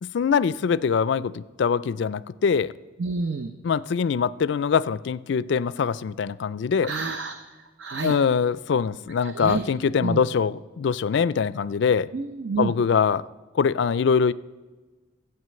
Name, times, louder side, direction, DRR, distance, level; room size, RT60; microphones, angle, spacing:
voice 1, 0.0-2.7 3.6-6.9 8.0-12.1 12.6-13.2 13.5-14.3, left 6 dB, 60° left, 18 dB, 0.3 m, -23 dB
voice 2, 3.0-3.5 6.8-7.4 7.8-8.2 9.2-9.6 10.0-10.2 12.1-12.7, right 4 dB, 60° right, 7 dB, 0.7 m, -28 dB
12.5 x 8.1 x 7.6 m, 1.2 s
head